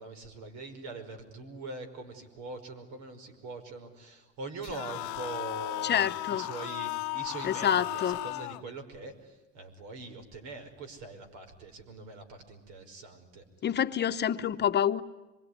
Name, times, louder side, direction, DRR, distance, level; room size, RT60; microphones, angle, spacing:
voice 1, 0.0-13.4, right 3 dB, 75° right, 7 dB, 5.4 m, -43 dB
sound 1, 4.6-8.6, left 22 dB, 80° left, 0.9 m, -36 dB
voice 2, 5.8-6.4 7.4-8.2 13.6-15.0, left 9 dB, 35° left, 9 dB, 1.0 m, -27 dB
26.0 x 23.5 x 9.7 m, 1.1 s
cardioid pair, 120°, 29 cm